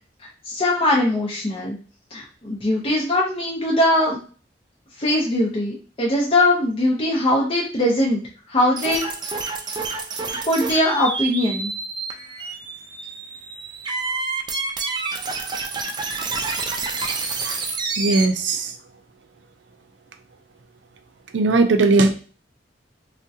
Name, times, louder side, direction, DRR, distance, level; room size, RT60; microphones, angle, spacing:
voice 1, 0.5-1.8 2.1-4.2 5.0-8.2 8.5-9.0 10.5-11.7, left 1 dB, 30° left, -3 dB, 0.6 m, -21 dB
sound 1, 8.8-18.2, right 4 dB, 25° right, 0.4 m, -28 dB
voice 2, 18.0-18.7 21.3-22.1, right 3 dB, 80° right, 7 dB, 0.5 m, -18 dB
3.5 x 2.1 x 2.7 m, 0.39 s
head